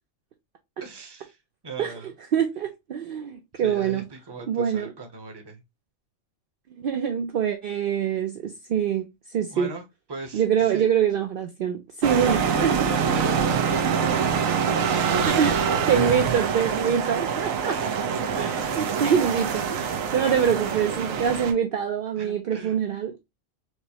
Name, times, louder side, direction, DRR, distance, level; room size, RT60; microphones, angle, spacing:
voice 1, 0.8-1.4 1.6-2.1 3.6-5.6 9.5-9.8 10.1-10.9 12.1-12.5 12.8-16.2 16.9-17.0 17.7-17.9 18.3-19.0 20.2-20.6 22.2-22.7, right 2 dB, 25° right, 0.6 m, -39 dB
voice 2, 1.8-4.0 4.5-4.9 6.8-9.7 10.3-13.0 15.3-17.7 18.4-23.2, right 8 dB, 60° right, 0.6 m, -25 dB
sound 1, 12.0-21.5, right 6 dB, 85° right, 1.0 m, -25 dB
4.6 x 2.0 x 2.7 m
omnidirectional pair, 1.4 m